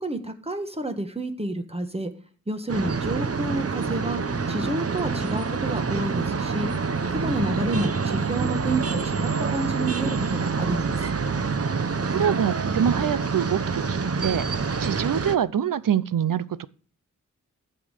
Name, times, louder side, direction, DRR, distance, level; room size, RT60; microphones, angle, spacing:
voice 1, 0.0-2.1 2.5-4.2 4.5-6.7 7.1-11.0, right 2 dB, 20° right, 1.7 m, -29 dB
sound 1, 2.7-15.4, right 5 dB, 45° right, 0.9 m, -26 dB
voice 2, 12.0-16.7, right 8 dB, 85° right, 0.7 m, -25 dB
15.0 x 5.7 x 6.5 m
wide cardioid pair, 95°, 32 cm